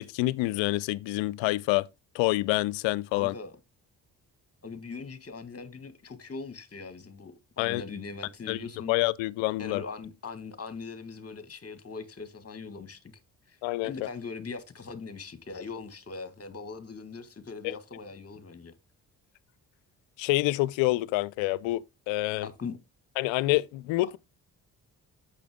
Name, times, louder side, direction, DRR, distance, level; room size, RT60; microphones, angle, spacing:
voice 1, 0.0-1.9 2.1-3.3 7.6-7.8 8.5-9.8 13.6-13.9 17.6-17.8 20.2-22.5 23.2-24.2, left 19 dB, 70° left, 0.6 m, -27 dB
voice 2, 3.1-3.6 4.6-8.9 9.6-13.0 13.5-13.6 13.8-18.7 22.4-22.8, left 4 dB, 30° left, 1.8 m, -41 dB
8.4 x 6.9 x 3.6 m
hypercardioid pair, 40°, 47 cm